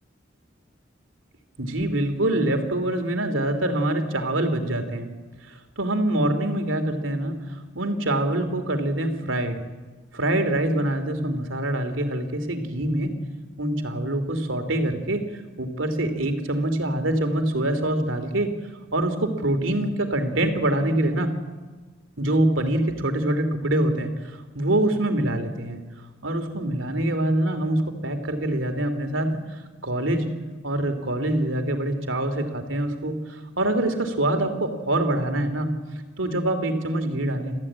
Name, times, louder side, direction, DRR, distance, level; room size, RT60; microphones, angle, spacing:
voice 1, 1.6-5.1 5.5-7.3 7.7-9.6 10.1-13.1 13.6-18.5 18.9-21.3 22.2-24.1 24.5-25.8 26.2-29.4 29.8-30.3 30.6-35.7 36.2-37.5, right 1 dB, 85° right, 7 dB, 2.8 m, -25 dB
27.5 x 14.5 x 8.8 m, 1.3 s
head